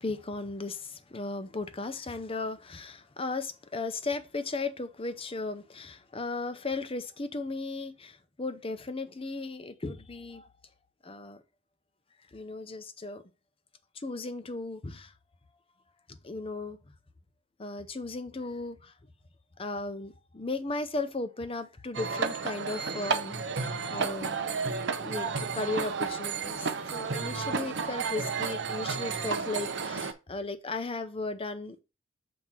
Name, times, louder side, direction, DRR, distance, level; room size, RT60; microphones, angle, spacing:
voice 1, 0.0-10.5 11.0-11.4 12.3-13.2 13.9-15.1 16.1-16.8 17.6-18.9 19.6-24.4 25.0-31.8, left 3 dB, 30° left, 0.7 m, -36 dB
sound 1, 21.9-30.1, right 5 dB, 60° right, 0.7 m, -32 dB
7.3 x 2.8 x 5.9 m
head